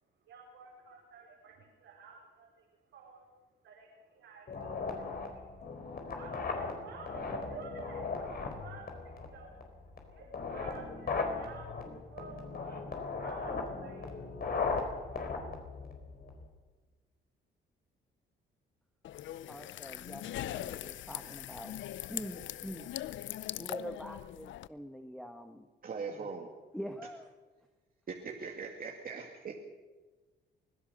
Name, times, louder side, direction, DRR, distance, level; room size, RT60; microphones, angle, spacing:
voice 1, 0.2-3.3 3.6-5.4 6.1-9.7 10.0-14.1, right 4 dB, 80° right, -3 dB, 4.9 m, -51 dB
sound 1, 4.5-16.5, left 4 dB, 50° left, 4.3 m, -38 dB
sound 2, 19.0-24.7, left 13 dB, 70° left, 0.6 m, -41 dB
voice 2, 19.5-21.8 22.1-22.9 23.6-25.7 26.1-26.3 26.7-27.3, equal, ahead, 5 dB, 1.5 m, -44 dB
voice 3, 25.8-26.5 28.1-29.5, right 5 dB, 45° right, 1 dB, 2.2 m, -40 dB
24.5 x 16.5 x 6.7 m, 1.2 s
cardioid pair, 90°, 20 cm